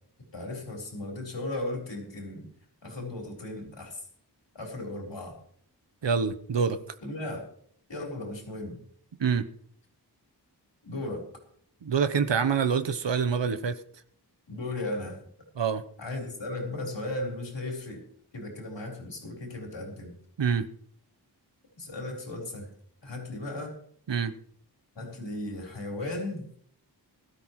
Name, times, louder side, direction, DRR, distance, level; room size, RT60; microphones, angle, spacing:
voice 1, 0.3-2.5 2.8-4.0 4.5-5.4 7.0-7.5 7.9-8.8 10.8-11.3 14.5-15.2 16.0-18.0 18.3-20.1 21.8-22.7 23.0-23.8 25.0-26.4, left 2 dB, 90° left, 0 dB, 4.3 m, -36 dB
voice 2, 6.0-6.8 9.2-9.5 11.8-13.8 15.6-15.8 20.4-20.7 24.1-24.3, right 6 dB, 90° right, 12 dB, 1.0 m, -26 dB
20.0 x 13.0 x 3.1 m, 0.62 s
wide cardioid pair, 55°, 42 cm